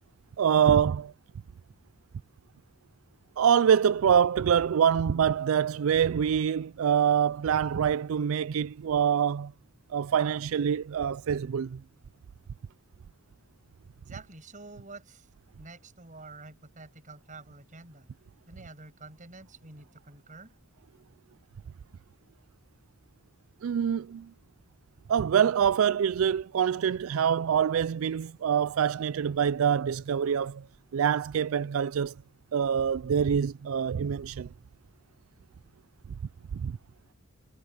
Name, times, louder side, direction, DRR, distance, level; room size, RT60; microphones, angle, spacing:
voice 1, 0.4-1.1 3.4-9.5 9.9-11.8 23.6-24.3 25.1-30.7 30.9-32.1 32.5-34.5 36.5-36.8, right 8 dB, 75° right, 0.4 m, -25 dB
voice 2, 14.1-15.3 15.6-18.1 18.5-20.6, right 3 dB, 40° right, 6.5 m, -48 dB
head